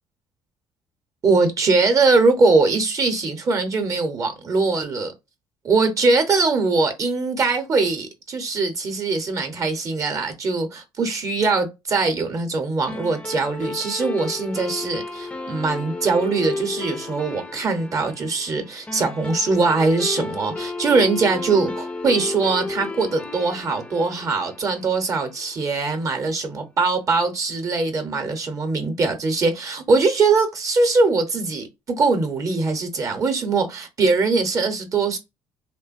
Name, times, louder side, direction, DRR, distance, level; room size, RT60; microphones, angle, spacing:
voice 1, 1.2-5.1 5.6-35.2, right 3 dB, 40° right, 0.8 m, -21 dB
sound 1, 12.9-25.6, left 3 dB, 15° left, 0.5 m, -32 dB
2.9 x 2.2 x 2.4 m
cardioid pair, 110°, 9 cm